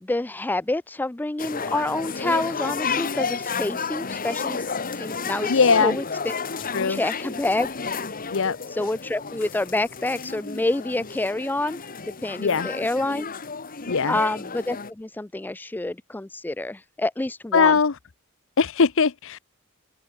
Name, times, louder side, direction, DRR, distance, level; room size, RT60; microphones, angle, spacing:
voice 1, 0.0-4.6 5.0-5.5 5.8-6.4 6.9-7.7 8.8-13.3 14.1-17.8, left 2 dB, 10° left, 0.4 m, -27 dB
sound 1, 1.4-14.9, left 5 dB, 40° left, 1.5 m, -31 dB
voice 2, 5.5-6.0 6.7-7.0 8.3-8.6 12.4-12.7 13.9-14.2 17.5-18.0 18.6-19.4, left 5 dB, 65° left, 0.8 m, -20 dB
open air
head